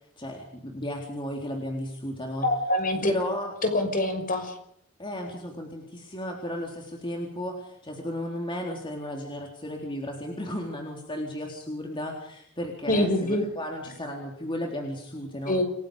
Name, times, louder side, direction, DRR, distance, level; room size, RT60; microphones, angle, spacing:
voice 1, 0.2-2.5 3.0-3.5 5.0-15.6, left 1 dB, 25° left, 1 dB, 3.9 m, -34 dB
voice 2, 2.4-3.1 3.6-4.5 12.9-13.4 15.5-15.6, left 1 dB, 40° left, 6 dB, 6.0 m, -25 dB
29.0 x 20.0 x 5.1 m, 0.71 s
head